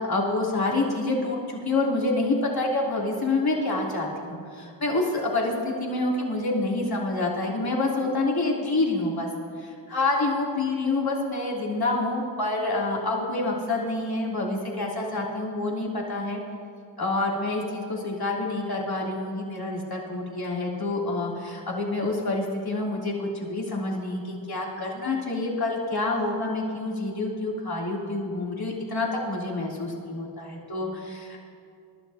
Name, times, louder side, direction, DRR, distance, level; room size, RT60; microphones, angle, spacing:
voice 1, 0.0-9.3 9.6-16.4 17.0-31.4, left 2 dB, 45° left, -3 dB, 3.6 m, -27 dB
23.5 x 12.0 x 3.0 m, 2.4 s
cardioid pair, 45°, 49 cm